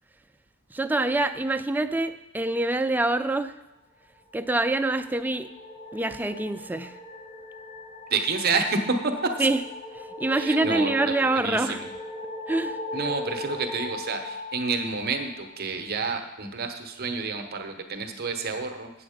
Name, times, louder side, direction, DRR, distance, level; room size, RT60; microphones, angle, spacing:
voice 1, 0.7-3.5 4.3-5.5 5.9-7.0 9.4-9.6 9.9-11.8 12.5-12.8, right 2 dB, 10° right, 9 dB, 0.3 m, -25 dB
sound 1, 4.3-15.7, left 2 dB, 40° left, 3.0 m, -38 dB
voice 2, 8.1-9.1 9.4-9.5 10.4-11.9 12.9-18.9, right 4 dB, 50° right, 5 dB, 1.0 m, -29 dB
7.8 x 7.6 x 5.1 m, 0.96 s
head